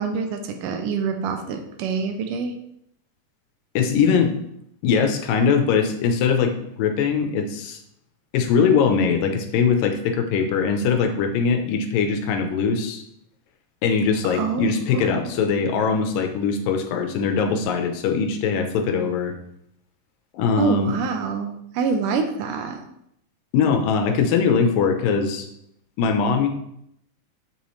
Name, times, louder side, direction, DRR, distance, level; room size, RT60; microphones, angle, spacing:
voice 1, 0.0-2.5 14.2-15.3 20.6-22.8, right 5 dB, 80° right, 5 dB, 2.3 m, -26 dB
voice 2, 3.8-4.3 4.8-7.8 8.3-13.0 13.8-19.3 20.3-20.9 23.5-25.5 26.0-26.5, left 6 dB, 85° left, 5 dB, 2.6 m, -21 dB
7.2 x 6.2 x 3.1 m, 0.75 s
omnidirectional pair, 3.8 m